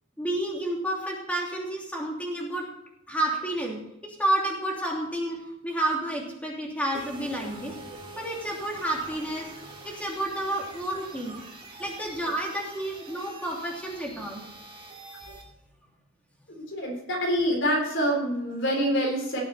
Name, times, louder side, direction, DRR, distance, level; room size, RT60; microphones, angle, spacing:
voice 1, 0.2-2.7 3.1-7.8 8.2-11.3 11.8-14.4, right 1 dB, 5° left, -1 dB, 2.9 m, -30 dB
sound 1, 6.9-15.4, right 2 dB, 25° right, 2.5 m, -45 dB
voice 2, 16.7-19.4, equal, 60° left, -1 dB, 4.1 m, -26 dB
18.0 x 7.7 x 4.3 m, 0.79 s
head